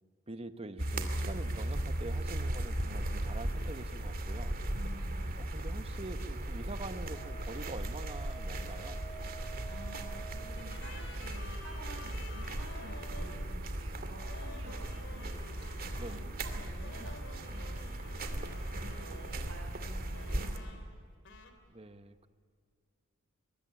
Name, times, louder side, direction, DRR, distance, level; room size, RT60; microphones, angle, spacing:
voice 1, 0.3-4.5 5.4-9.0 14.0-14.4 16.0-16.3 21.7-22.3, right 2 dB, 30° right, 10 dB, 1.2 m, -45 dB
sound 1, 0.8-20.6, right 1 dB, 45° right, 2.4 m, -37 dB
voice 2, 4.7-5.2 9.7-17.8 18.3-20.7, right 1 dB, 75° right, 3 dB, 5.9 m, -51 dB
Wind instrument woodwind instrument, 7.1-10.8, right 6 dB, 15° left, 1.7 m, -50 dB
sound 2, 10.6-13.5 14.3-16.3 16.8-19.6 20.1-21.0 21.2-21.5, left 3 dB, 65° left, 3.1 m, -51 dB
24.0 x 21.0 x 10.0 m, 2.1 s
head